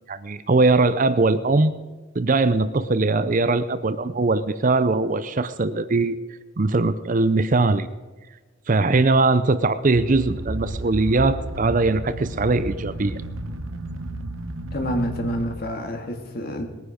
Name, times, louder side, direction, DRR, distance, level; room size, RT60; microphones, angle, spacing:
voice 1, 0.1-1.7 2.1-6.2 6.6-7.9 8.7-13.2, right 3 dB, 40° right, 13 dB, 0.5 m, -21 dB
sound 1, 9.9-15.6, right 1 dB, 80° right, 1.0 m, -32 dB
voice 2, 14.7-16.7, equal, 45° left, 4 dB, 1.9 m, -28 dB
20.0 x 9.6 x 5.1 m, 1.3 s
head